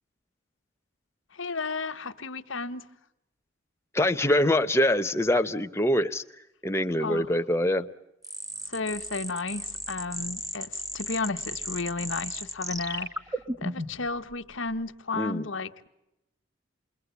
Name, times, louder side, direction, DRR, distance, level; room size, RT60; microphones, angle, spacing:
voice 1, 1.3-2.9 7.0-7.3 8.7-15.9, left 3 dB, 75° left, 9 dB, 1.3 m, -33 dB
voice 2, 3.9-6.2 6.6-7.9 15.1-15.5, left 1 dB, 15° left, 8 dB, 1.0 m, -24 dB
sound 1, 8.2-14.1, right 2 dB, 15° right, 1.5 m, -35 dB
29.0 x 22.5 x 8.4 m, 0.89 s
head